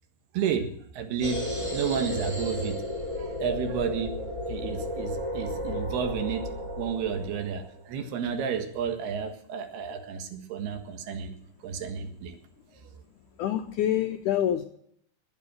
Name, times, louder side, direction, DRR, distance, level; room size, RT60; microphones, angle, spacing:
voice 1, 0.3-1.5 1.7-4.2 4.5-6.5 6.8-11.3 11.6-12.4, right 7 dB, 85° right, 7 dB, 3.6 m, -31 dB
sound 1, 1.2-7.8, equal, 10° right, 4.1 m, -33 dB
voice 2, 13.4-14.7, left 11 dB, 85° left, 7 dB, 1.8 m, -26 dB
20.0 x 8.2 x 6.3 m, 0.67 s
omnidirectional pair, 4.5 m